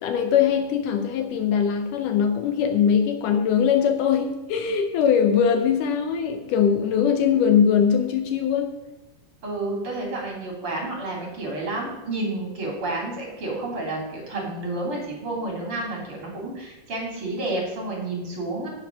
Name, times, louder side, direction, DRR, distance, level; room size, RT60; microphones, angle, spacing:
voice 1, 0.0-8.8, left 7 dB, 80° left, 7 dB, 1.9 m, -21 dB
voice 2, 9.4-18.7, right 2 dB, 35° right, -1 dB, 3.3 m, -30 dB
9.6 x 7.8 x 6.3 m, 1.1 s
omnidirectional pair, 4.5 m